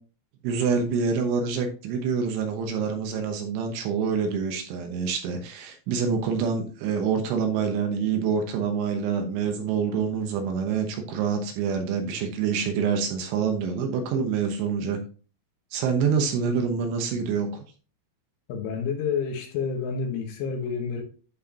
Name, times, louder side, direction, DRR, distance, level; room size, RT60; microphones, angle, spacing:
voice 1, 0.4-15.0 15.7-17.6, right 6 dB, 75° right, 3.2 m, -26 dB
voice 2, 18.5-21.0, left 6 dB, 75° left, 3.5 m, -29 dB
11.5 x 4.7 x 2.9 m
omnidirectional pair, 6.0 m